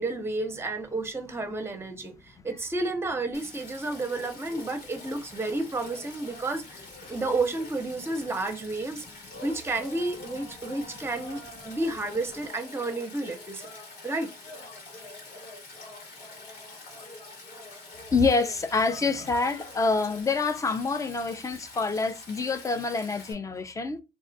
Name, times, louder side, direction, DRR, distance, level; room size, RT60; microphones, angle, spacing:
voice 1, 0.0-9.0 9.4-13.6 14.0-14.3, right 2 dB, 15° right, 0.7 m, -31 dB
Stream, 3.3-23.3, left 3 dB, 70° left, 1.5 m, -47 dB
sound 1, 3.9-20.2, left 1 dB, 35° left, 0.9 m, -48 dB
voice 2, 18.1-24.0, left 4 dB, 20° left, 0.4 m, -26 dB
2.5 x 2.3 x 3.9 m
cardioid pair, 110°, 17 cm